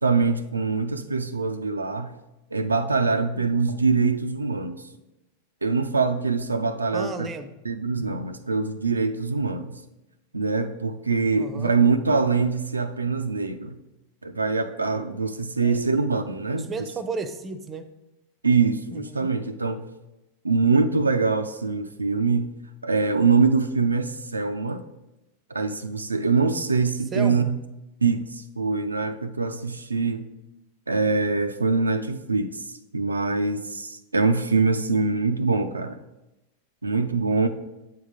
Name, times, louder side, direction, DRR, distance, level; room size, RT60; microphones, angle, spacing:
voice 1, 0.0-2.1 2.5-4.8 5.6-7.3 7.6-9.8 10.3-13.7 14.2-16.7 18.4-19.8 20.4-22.5 22.8-24.8 25.5-27.6 28.0-30.2 30.9-36.0 36.8-37.5, right 4 dB, 80° right, 8 dB, 0.3 m, -24 dB
voice 2, 6.9-7.5 11.4-11.8 15.6-15.8 16.5-17.8 18.9-19.3 27.1-27.5, right 4 dB, 20° right, 11 dB, 0.6 m, -33 dB
7.7 x 3.7 x 5.0 m, 0.95 s
figure-of-eight pair, 90°, 0 cm